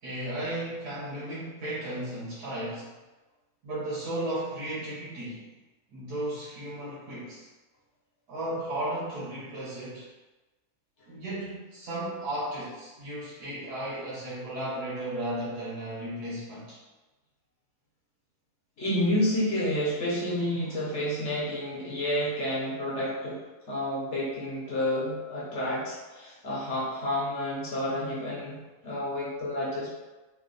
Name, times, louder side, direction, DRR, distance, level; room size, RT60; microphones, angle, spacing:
voice 1, 0.0-2.9 3.6-5.5 5.9-7.5 8.3-10.1 11.1-16.8 26.2-26.3, right 1 dB, 90° right, -8 dB, 1.5 m, -35 dB
voice 2, 18.8-23.4 23.7-29.9, left 1 dB, 55° left, -6 dB, 0.9 m, -30 dB
3.6 x 2.1 x 3.7 m, 1.1 s
omnidirectional pair, 1.7 m